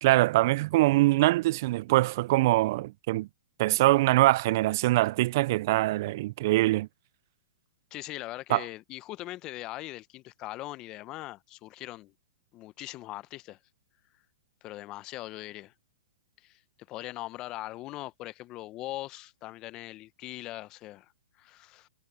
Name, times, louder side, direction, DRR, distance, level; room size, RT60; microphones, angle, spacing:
voice 1, 0.0-3.3 3.6-6.9 8.5-8.6, right 18 dB, 50° right, 0.4 m, -23 dB
voice 2, 7.9-12.1 12.5-13.6 14.6-15.7 16.4-16.6 16.9-21.1 21.4-21.9, left 17 dB, 30° left, 1.0 m, -40 dB
hypercardioid pair, 130°, 2 cm